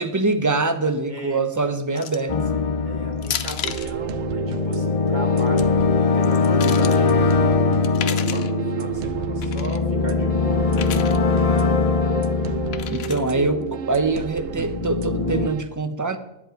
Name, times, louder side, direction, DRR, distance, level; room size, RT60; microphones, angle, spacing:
voice 1, 0.0-2.3 12.9-16.2, right 3 dB, 20° right, 9 dB, 0.7 m, -24 dB
voice 2, 1.1-1.4 1.9-2.4 2.8-7.6 7.9-10.6 11.9-12.2, right 1 dB, 40° right, 2 dB, 1.9 m, -36 dB
sound 1, 2.0-2.3 3.2-3.9 5.3-5.6 6.2-7.0 7.8-8.5 9.4-9.8 10.7-11.2 12.7-13.3, left 9 dB, 65° left, 0.9 m, -32 dB
sound 2, 2.3-14.0 14.4-15.5, left 4 dB, 40° left, 0.5 m, -22 dB
sound 3, 3.6-15.6, right 10 dB, 75° right, 0.9 m, -32 dB
10.5 x 9.6 x 5.2 m, 0.84 s
omnidirectional pair, 1.2 m